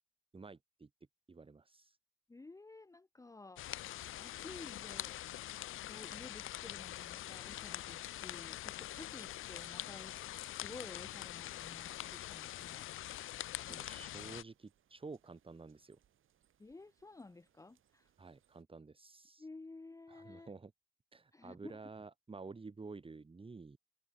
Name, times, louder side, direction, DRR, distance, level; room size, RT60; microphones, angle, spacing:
voice 1, 0.3-0.9 1.3-2.0 13.7-16.0 18.2-19.5 20.1-20.7 21.1-23.8, right 4 dB, 25° right, 1.8 m, -51 dB
voice 2, 2.3-5.1 5.9-13.2 13.7-13.8 16.6-18.1 19.4-20.5 21.3-21.8, left 3 dB, 15° left, 0.9 m, -53 dB
sound 1, 3.6-14.4, left 14 dB, 75° left, 0.6 m, -44 dB
sound 2, 9.0-18.6, right 10 dB, 70° right, 7.3 m, -76 dB
cardioid pair, 80°, 21 cm